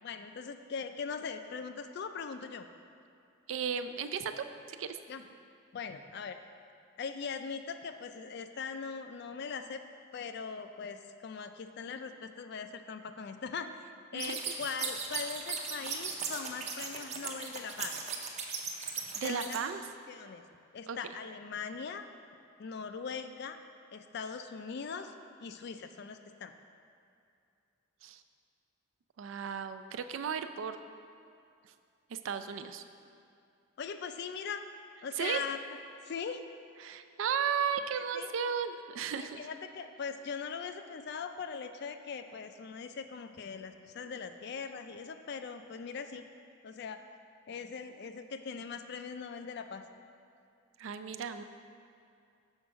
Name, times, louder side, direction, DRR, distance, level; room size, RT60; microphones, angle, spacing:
voice 1, 0.0-2.7 5.1-5.2 5.7-6.4 7.0-9.8 10.1-18.0 19.2-19.6 20.1-20.4 20.7-22.1 22.6-23.6 23.9-25.1 25.4-26.5 33.8-34.6 35.0-35.6 36.0-36.4 38.1-38.3 39.2-46.3 46.6-47.0 47.5-49.8, left 5 dB, 55° left, 8 dB, 0.4 m, -40 dB
voice 2, 3.5-5.0 14.1-14.4 19.2-19.9 20.9-21.1 28.0-28.2 29.2-30.8 32.1-32.8 35.2-35.4 36.8-39.5 50.8-51.4, right 7 dB, 75° right, 10 dB, 0.4 m, -35 dB
sound 1, 14.2-19.6, right 5 dB, 35° right, 0.6 m, -37 dB
6.3 x 4.5 x 6.1 m, 2.5 s
head